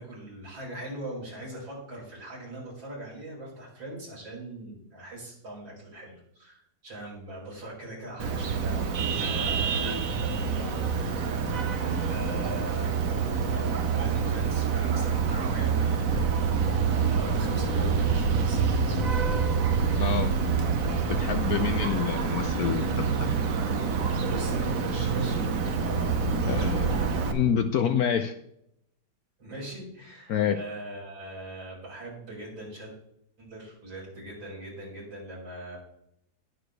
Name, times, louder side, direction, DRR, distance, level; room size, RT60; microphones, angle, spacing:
voice 1, 0.0-11.5 11.8-16.4 16.7-19.6 24.3-25.8 26.5-26.8 29.4-32.9 33.4-35.8, right 1 dB, 85° right, -5 dB, 6.2 m, -41 dB
Vehicle horn car horn honking, 8.2-27.3, right 5 dB, 50° right, 1.3 m, -26 dB
voice 2, 19.9-20.3 21.1-23.3 26.4-26.9 27.3-28.3 30.3-30.6, left 8 dB, 70° left, 9 dB, 0.9 m, -27 dB
19.5 x 6.7 x 3.2 m, 0.75 s
omnidirectional pair, 2.1 m